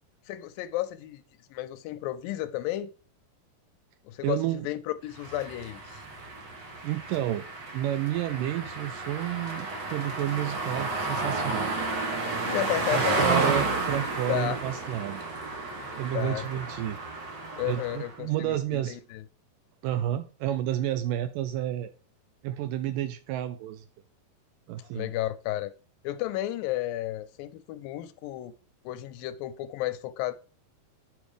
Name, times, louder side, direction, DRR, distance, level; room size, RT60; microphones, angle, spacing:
voice 1, 0.3-1.2 1.5-2.9 4.1-6.0 12.4-13.6 14.3-14.6 15.7-16.5 17.6-19.2 24.8-25.7 26.0-28.5 28.9-30.4, left 14 dB, 80° left, 2.2 m, -33 dB
voice 2, 4.2-4.7 6.8-7.5 7.7-11.8 12.9-15.2 15.9-17.0 17.4-19.0 19.8-21.9 22.4-23.8 24.7-25.1, right 12 dB, 80° right, 2.0 m, -30 dB
sound 1, 5.2-18.2, right 3 dB, 55° right, 1.2 m, -32 dB
7.5 x 5.3 x 4.9 m
omnidirectional pair, 4.2 m